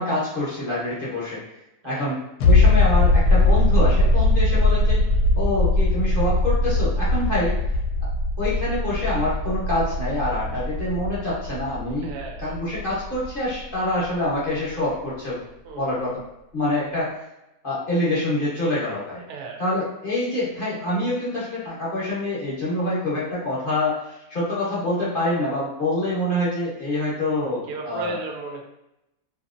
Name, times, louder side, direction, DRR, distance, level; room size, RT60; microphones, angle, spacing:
voice 1, 0.0-1.4 1.8-2.1 2.4-5.0 5.4-7.6 8.4-12.1 12.4-15.4 15.7-16.2 16.5-17.1 17.6-19.2 19.6-28.2, left 1 dB, 45° left, -7 dB, 0.9 m, -26 dB
sound 1, 2.4-13.7 14.0-14.1, left 2 dB, 80° left, 1.1 m, -20 dB
voice 2, 12.0-12.6 15.6-16.2 19.3-19.6 27.2-28.7, right 3 dB, 75° right, 0 dB, 1.0 m, -35 dB
2.8 x 2.7 x 2.5 m, 0.88 s
omnidirectional pair, 1.6 m